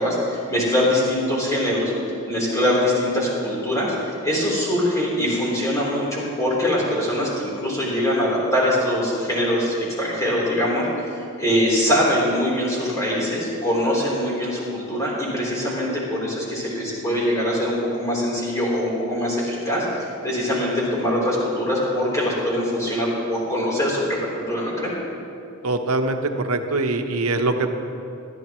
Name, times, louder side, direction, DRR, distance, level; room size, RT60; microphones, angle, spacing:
voice 1, 0.0-1.9 2.3-24.9, equal, 15° left, -6 dB, 3.5 m, -23 dB
voice 2, 25.6-26.2 26.4-27.7, right 2 dB, 90° right, 6 dB, 0.9 m, -23 dB
19.5 x 12.5 x 3.1 m, 2.6 s
head